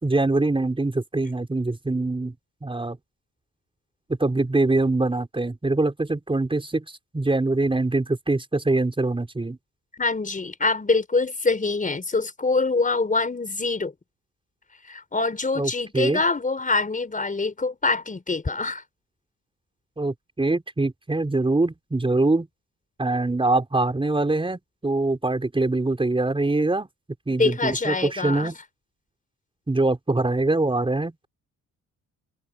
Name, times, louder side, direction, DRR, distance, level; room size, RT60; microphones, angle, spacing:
voice 1, 0.0-2.3 2.6-3.0 4.2-6.8 7.1-9.6 15.6-16.2 20.0-22.5 23.0-26.9 27.3-28.5 29.7-31.3, right 2 dB, 15° right, 4.7 m, -23 dB
voice 2, 10.0-13.9 14.9-18.8 27.4-28.5, left 3 dB, 25° left, 5.3 m, -25 dB
cardioid pair, 95°, 33 cm